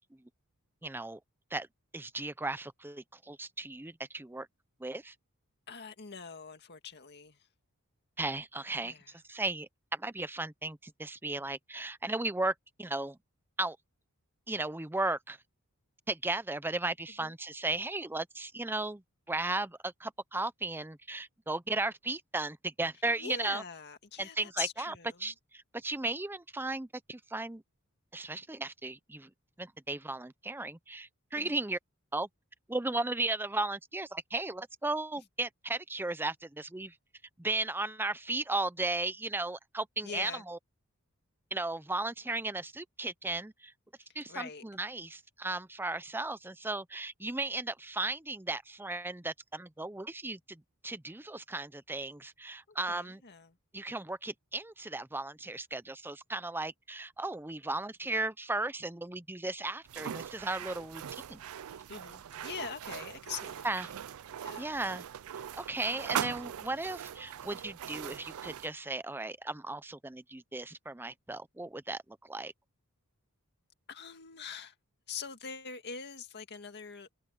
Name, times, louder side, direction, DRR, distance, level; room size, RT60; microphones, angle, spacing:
voice 1, 0.8-1.2 1.5-1.7 1.9-4.5 4.8-5.1 8.2-13.2 13.6-13.8 14.5-15.4 16.1-23.6 24.2-24.9 25.2-27.6 28.1-29.3 29.6-31.8 32.1-32.3 32.7-36.9 37.4-40.6 41.5-43.7 44.1-53.2 53.7-61.4 63.6-63.9 64.6-65.0 65.3-72.5, right 2 dB, 10° right, 0.7 m, -36 dB
voice 2, 5.7-7.5 8.8-9.2 17.2-17.3 23.2-25.3 31.4-31.6 40.0-40.4 44.3-44.6 52.7-53.6 61.9-63.7 64.4-64.8 73.9-74.7 75.1-77.1, left 6 dB, 50° left, 2.0 m, -43 dB
sound 1, 59.9-68.7, right 9 dB, 70° right, 0.4 m, -40 dB
head